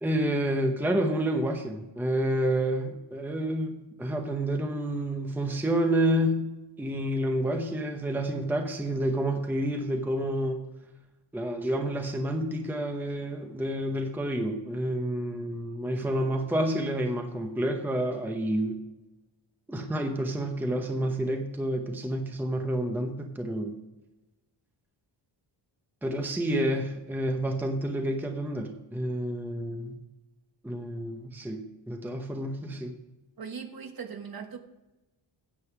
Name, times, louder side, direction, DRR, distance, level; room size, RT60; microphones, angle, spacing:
voice 1, 0.0-10.6 11.3-18.8 19.7-23.8 26.0-30.0 30.6-32.9, right 1 dB, 5° right, 4 dB, 0.8 m, -29 dB
voice 2, 33.4-34.6, right 6 dB, 45° right, 6 dB, 1.2 m, -39 dB
9.8 x 7.7 x 5.9 m, 1.0 s
wide cardioid pair, 165°, 49 cm